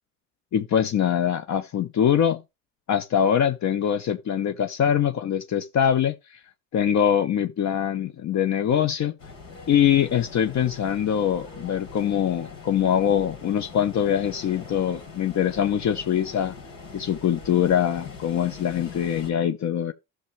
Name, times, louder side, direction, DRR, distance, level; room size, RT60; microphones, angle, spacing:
voice 1, 0.5-2.4 2.9-6.4 6.7-9.1 9.7-16.5 16.9-19.9, left 9 dB, 55° left, 0.9 m, -23 dB
sound 1, 9.2-19.3, left 4 dB, 85° left, 5.0 m, -42 dB
13.0 x 6.2 x 3.2 m
supercardioid pair, 75°, 34 cm